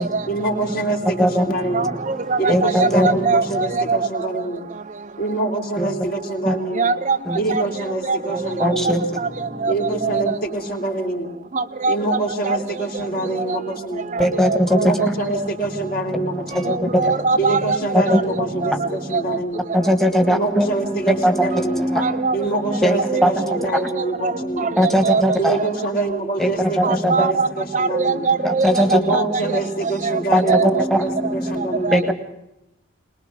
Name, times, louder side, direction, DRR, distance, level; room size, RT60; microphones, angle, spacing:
voice 1, 0.3-1.9 2.4-4.6 5.2-6.9 7.3-9.0 9.7-11.3 11.9-14.1 14.7-16.8 17.4-19.7 20.3-21.9 22.3-24.7 25.4-28.3 28.9-32.0, right 2 dB, 45° left, 2 dB, 3.5 m, -25 dB
voice 2, 1.7-4.0 6.8-7.2 7.5-7.6 8.1-8.2 9.2-9.3 9.6-9.7 10.0-10.2 11.6-12.2 12.5-12.6 13.5-13.6 14.1-14.8 15.3-15.4 16.7-17.8 18.1-18.2 18.6-18.7 19.1-19.2 22.0-22.4 23.1-23.3 24.2-24.3 24.6-24.7 25.0-25.2 26.8-27.5 27.7-29.4 30.0-30.2 30.5-30.8 31.9-32.0, right 4 dB, 35° right, 9 dB, 0.7 m, -21 dB
voice 3, 2.5-3.1 5.8-5.9 6.5-6.6 7.3-7.4 8.6-9.0 14.2-14.8 15.1-15.2 16.9-17.0 18.1-18.2 19.7-20.7 21.2-22.1 22.8-22.9 23.2-23.3 24.8-25.6 26.4-26.5 26.8-27.3 28.4-29.2 30.3-30.4 30.8-31.0 31.9-32.1, equal, ahead, 5 dB, 1.7 m, -18 dB
22.0 x 21.0 x 6.7 m, 0.88 s
head